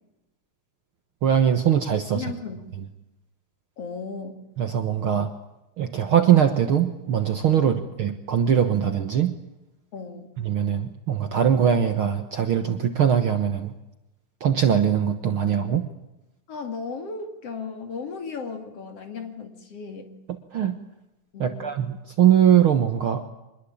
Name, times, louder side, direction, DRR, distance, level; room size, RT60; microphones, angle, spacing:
voice 1, 1.2-2.2 4.6-5.3 5.8-9.3 10.4-13.7 14.4-15.8 20.5-20.8 21.4-23.3, right 9 dB, 55° right, 7 dB, 1.7 m, -21 dB
voice 2, 2.1-2.7 3.8-4.4 7.6-7.9 9.9-10.3 16.5-20.1 21.3-21.8, left 5 dB, 50° left, 6 dB, 3.4 m, -35 dB
25.0 x 21.5 x 8.6 m, 0.95 s
omnidirectional pair, 3.5 m